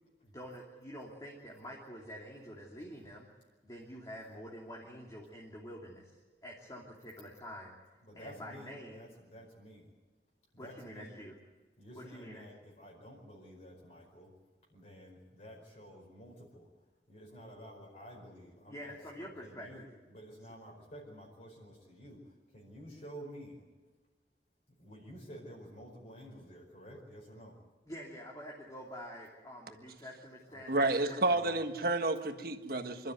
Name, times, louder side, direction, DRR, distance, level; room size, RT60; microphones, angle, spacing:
voice 1, 0.2-3.3 3.6-6.1 6.4-7.7 8.1-9.0 10.6-11.4 11.9-12.5 18.7-19.9 20.4-20.5 27.8-31.2, equal, 20° left, 3.0 m, -47 dB
voice 2, 8.1-8.7 8.9-9.8 10.5-11.1 11.8-12.5 12.8-14.3 14.7-16.7 17.1-19.0 19.6-19.8 20.1-22.2 22.5-23.6 24.8-27.5 30.5-30.6 31.4-31.5, equal, 45° left, 4.9 m, -51 dB
voice 3, 30.7-33.1, right 2 dB, 55° right, 1.5 m, -30 dB
27.0 x 13.0 x 9.5 m
head